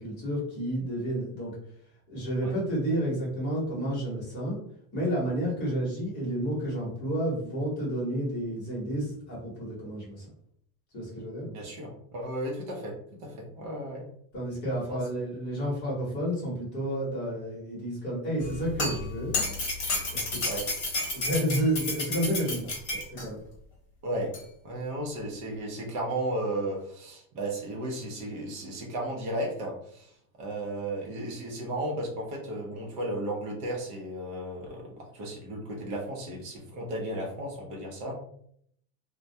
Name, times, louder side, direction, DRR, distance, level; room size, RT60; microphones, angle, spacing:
voice 1, 0.0-1.6 2.1-4.6 4.9-10.3 10.9-11.5 14.3-19.3 20.1-20.4 21.1-22.7 23.2-23.4, right 1 dB, 20° left, -6 dB, 1.0 m, -30 dB
voice 2, 11.5-14.1 14.9-15.0 20.4-20.6 24.0-24.3 24.6-38.2, right 1 dB, 35° right, 0 dB, 0.6 m, -34 dB
sound 1, 18.4-23.2 24.3-24.4, left 2 dB, 45° left, 1.2 m, -31 dB
2.2 x 2.2 x 2.6 m, 0.67 s
supercardioid pair, 170°, 47 cm